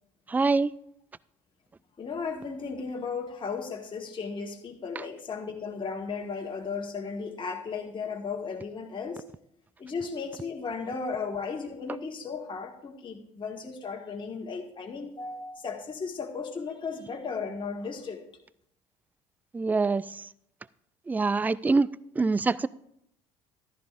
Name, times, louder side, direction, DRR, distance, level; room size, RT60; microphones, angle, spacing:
voice 1, 0.3-0.7 5.0-5.1 19.5-20.3 21.1-21.9 22.2-22.7, right 3 dB, 10° right, 21 dB, 0.3 m, -25 dB
voice 2, 2.0-9.2 9.8-18.2, left 5 dB, 30° left, 0 dB, 1.6 m, -35 dB
14.5 x 12.5 x 2.5 m, 0.76 s
figure-of-eight pair, 55°, 17 cm